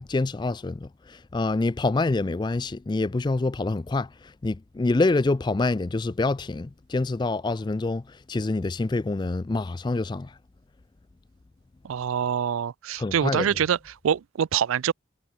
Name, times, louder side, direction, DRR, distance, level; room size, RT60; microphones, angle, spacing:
voice 1, 0.0-4.1 4.4-10.3 13.0-13.5, left 3 dB, 20° left, 0.3 m, -26 dB
voice 2, 11.8-14.9, right 8 dB, 85° right, 0.4 m, -25 dB
head